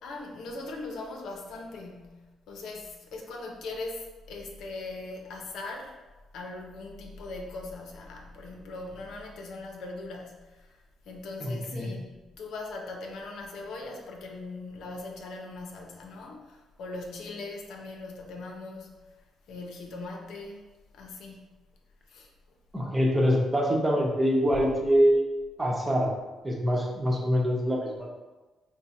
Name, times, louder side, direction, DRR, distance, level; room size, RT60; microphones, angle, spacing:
voice 1, 0.0-6.0 6.3-10.8 11.1-18.9 19.5-20.6 20.9-21.5 22.1-22.3 24.5-24.7, left 2 dB, 75° left, 1 dB, 0.7 m, -40 dB
voice 2, 11.4-12.0 22.7-25.2 25.6-26.1 26.4-28.1, equal, 15° right, -1 dB, 0.9 m, -24 dB
4.5 x 2.2 x 4.2 m, 1.2 s
cardioid pair, 90°, 0 cm